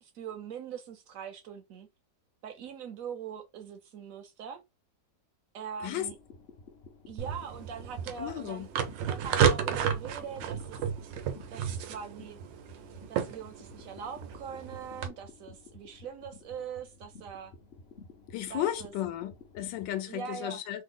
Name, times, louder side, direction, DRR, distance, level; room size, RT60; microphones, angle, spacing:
voice 1, 0.0-1.9 2.4-4.6 5.5-6.2 7.1-8.7 9.0-10.8 11.5-12.4 13.1-17.5 18.5-18.9 20.1-20.6, right 7 dB, 70° right, 0.8 m, -42 dB
sound 1, 5.8-20.0, left 4 dB, 60° left, 0.6 m, -53 dB
sound 2, 7.2-15.1, right 8 dB, 90° right, 1.3 m, -32 dB
voice 2, 8.2-8.7 18.3-20.8, left 12 dB, 85° left, 1.3 m, -34 dB
3.3 x 2.0 x 3.6 m
omnidirectional pair, 1.9 m